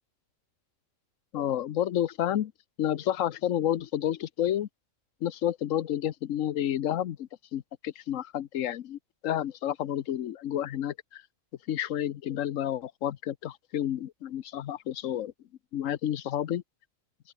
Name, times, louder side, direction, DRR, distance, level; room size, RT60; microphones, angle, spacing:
voice 1, 1.3-2.5 2.8-4.7 5.2-11.2 11.7-15.3 15.7-16.6, left 11 dB, 75° left, 1.2 m, -30 dB
open air
omnidirectional pair, 1.4 m